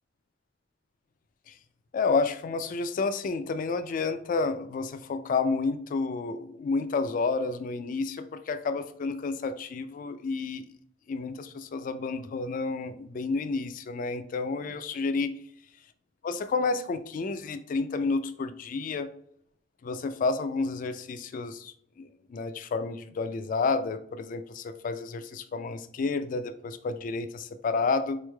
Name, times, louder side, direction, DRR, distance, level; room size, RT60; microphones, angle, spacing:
voice 1, 1.9-10.7 11.1-15.3 16.2-19.1 19.8-28.2, left 4 dB, 45° left, 10 dB, 0.3 m, -30 dB
4.1 x 3.1 x 2.2 m, 0.66 s
head